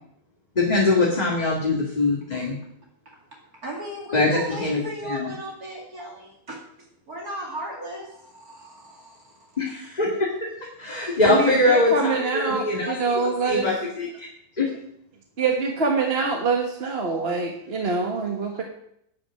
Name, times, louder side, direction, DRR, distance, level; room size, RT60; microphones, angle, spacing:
voice 1, 0.6-2.6 4.1-5.3 9.6-10.5 10.8-14.3 14.6-14.7, left 2 dB, 25° left, -3 dB, 2.1 m, -23 dB
voice 2, 3.6-6.6 7.1-9.5, equal, 60° right, -2 dB, 2.8 m, -35 dB
voice 3, 11.2-13.7 15.4-18.6, right 4 dB, 40° right, 2 dB, 1.5 m, -25 dB
11.0 x 8.9 x 6.3 m, 0.72 s
omnidirectional pair, 1.8 m